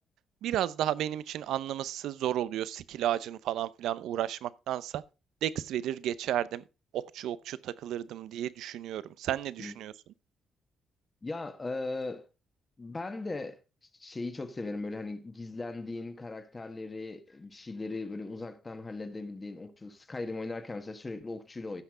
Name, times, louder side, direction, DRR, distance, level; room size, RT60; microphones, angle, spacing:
voice 1, 0.4-5.0 5.4-6.6 6.9-9.9, right 11 dB, 80° right, 0.6 m, -33 dB
voice 2, 11.2-12.3 12.8-13.6 13.9-21.8, left 3 dB, 25° left, 1.5 m, -38 dB
15.5 x 5.9 x 3.7 m
cardioid pair, 90°, 0 cm